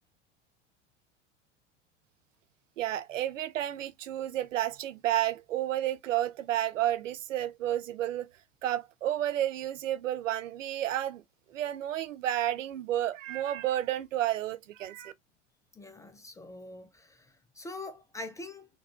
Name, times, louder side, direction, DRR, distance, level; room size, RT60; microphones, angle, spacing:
voice 1, 2.8-8.3 8.6-11.2 11.5-15.1, right 12 dB, 85° right, 0.5 m, -31 dB
voice 2, 15.8-18.7, left 2 dB, 10° left, 0.3 m, -44 dB
3.9 x 2.3 x 2.3 m
hypercardioid pair, 95°, 37 cm